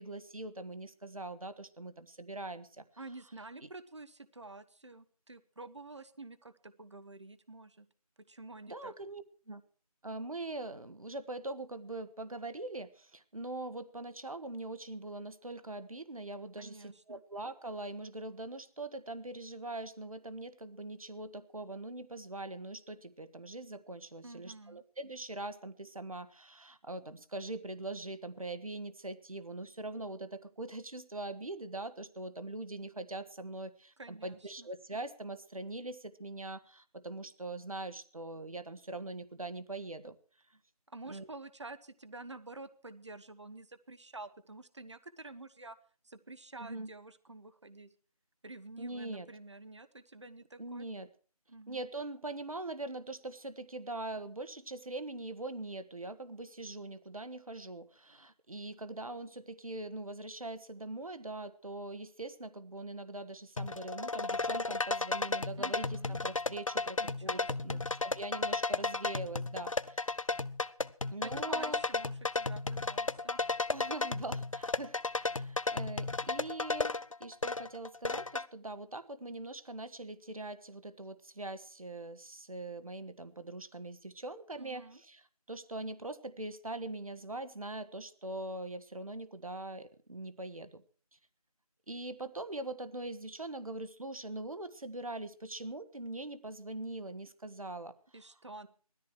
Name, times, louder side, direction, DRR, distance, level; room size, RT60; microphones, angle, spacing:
voice 1, 0.0-2.8 3.6-3.7 8.7-9.6 10.0-40.2 41.1-41.3 46.6-46.9 48.8-49.3 50.6-51.1 51.7-70.2 71.1-71.8 73.7-76.9 77.2-85.2 85.5-90.8 91.9-98.0, right 2 dB, 65° right, 12 dB, 1.6 m, -42 dB
voice 2, 3.0-7.9 8.3-8.9 16.6-17.2 24.2-24.8 34.0-34.7 40.9-45.8 46.0-47.9 48.4-50.9 51.5-51.8 65.6-66.2 67.0-67.8 71.2-73.4 84.6-85.0 98.1-98.7, right 2 dB, 50° right, 13 dB, 1.1 m, -49 dB
sound 1, 63.6-78.5, left 3 dB, 55° left, 0.7 m, -34 dB
17.5 x 13.5 x 4.7 m, 0.40 s
figure-of-eight pair, 170°, 20 cm